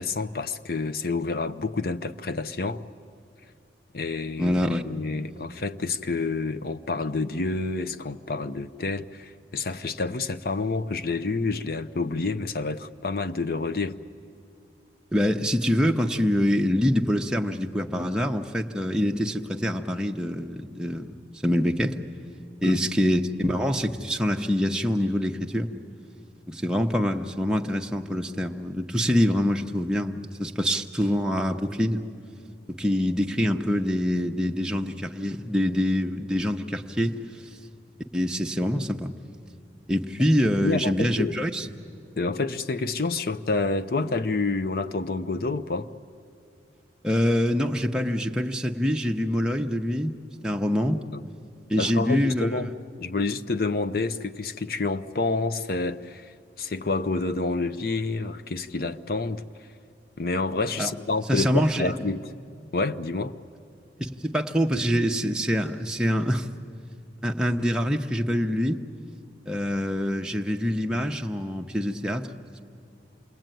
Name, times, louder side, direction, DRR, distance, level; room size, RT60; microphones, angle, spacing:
voice 1, 0.0-2.8 3.9-4.5 4.8-14.0 22.6-22.8 40.6-41.3 42.2-45.9 51.1-51.2 51.8-52.7 53.0-56.3 56.6-59.4 60.2-62.3 62.7-63.3, left 3 dB, 50° left, 0.7 m, -28 dB
voice 2, 4.4-4.8 15.1-21.1 21.4-22.0 22.6-25.7 26.5-32.0 32.8-37.2 38.1-39.1 39.9-41.7 47.0-50.2 50.4-51.0 51.7-52.5 60.8-60.9 61.3-61.9 64.0-66.5 67.2-68.8 69.5-72.3, equal, 5° right, 0.8 m, -25 dB
27.5 x 21.5 x 9.2 m
head